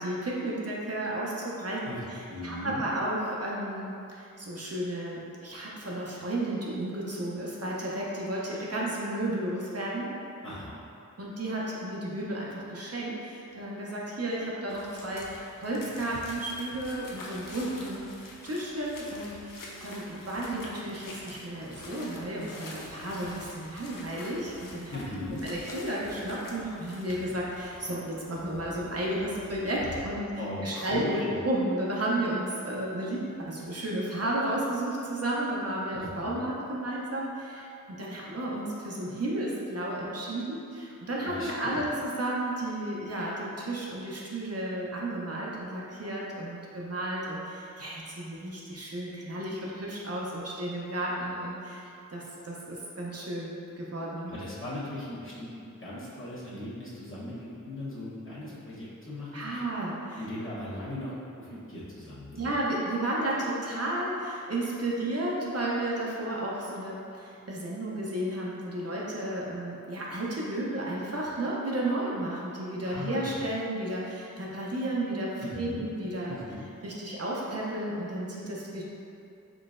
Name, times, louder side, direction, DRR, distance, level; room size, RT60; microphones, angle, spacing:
voice 1, 0.0-10.1 11.2-25.0 25.4-30.3 30.6-31.0 31.4-51.8 52.1-54.3 59.3-60.2 62.3-76.4 76.8-78.8, right 1 dB, 50° right, -5 dB, 0.6 m, -33 dB
voice 2, 1.8-2.9 10.4-10.7 24.9-25.4 30.4-31.4 35.9-36.4 41.2-41.8 54.3-55.5 55.8-59.6 60.2-62.5 72.8-73.4 75.4-75.9 76.3-76.7, left 1 dB, 40° left, -9 dB, 0.9 m, -38 dB
sound 1, 14.7-30.0, left 2 dB, 85° left, 0.5 m, -46 dB
3.7 x 3.2 x 2.5 m, 2.6 s
wide cardioid pair, 55°, 32 cm